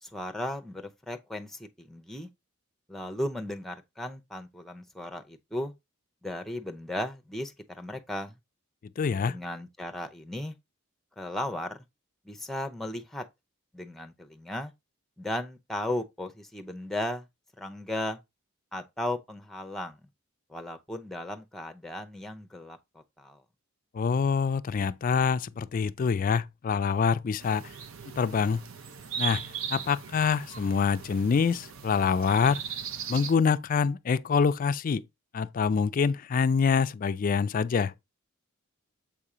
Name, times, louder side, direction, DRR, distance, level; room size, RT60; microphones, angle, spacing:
voice 1, 0.0-2.3 2.9-5.7 6.2-8.4 9.3-10.5 11.2-11.8 12.2-13.2 13.7-14.7 15.2-17.3 17.6-18.2 18.7-20.0 20.5-23.4, left 1 dB, ahead, 0.6 m, -36 dB
voice 2, 9.0-9.3 23.9-27.6 28.2-28.6 29.2-29.4 29.7-32.6 33.1-35.0 35.3-37.9, left 6 dB, 40° left, 0.3 m, -25 dB
sound 1, 27.4-33.3, right 8 dB, 70° right, 0.6 m, -38 dB
7.3 x 2.8 x 4.9 m
head